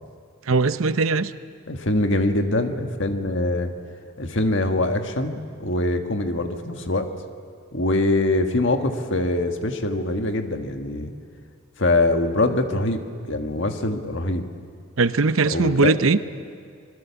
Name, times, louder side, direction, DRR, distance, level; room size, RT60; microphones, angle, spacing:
voice 1, 0.5-1.3 15.0-16.2, right 4 dB, 80° right, 13 dB, 0.8 m, -20 dB
voice 2, 1.7-3.7 4.2-7.1 7.7-11.1 11.8-14.5 15.4-15.9, left 2 dB, 60° left, 5 dB, 1.7 m, -23 dB
26.0 x 21.5 x 7.1 m, 2.2 s
head